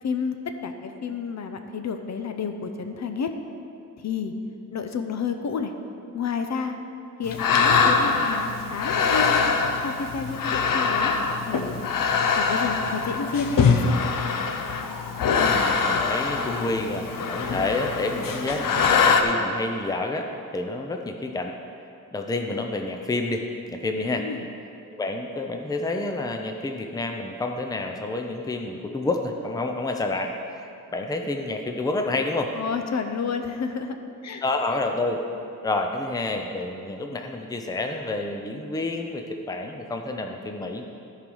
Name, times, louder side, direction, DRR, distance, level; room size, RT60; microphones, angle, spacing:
voice 1, 0.0-3.3 4.0-4.3 4.7-5.7 6.1-6.8 7.2-9.4 9.8-11.1 11.5-11.8 12.4-14.0 24.2-24.5 32.5-33.9 34.2-34.4, left 5 dB, 55° left, 7 dB, 0.6 m, -30 dB
sound 1, 7.3-19.2, left 5 dB, 85° left, 0.8 m, -23 dB
voice 2, 15.3-20.3 20.5-21.5 22.1-24.3 24.9-30.3 30.9-32.5 34.4-35.2 35.6-40.8, left 2 dB, 10° left, 3 dB, 0.5 m, -29 dB
13.5 x 5.0 x 5.4 m, 2.6 s
wide cardioid pair, 170°, 32 cm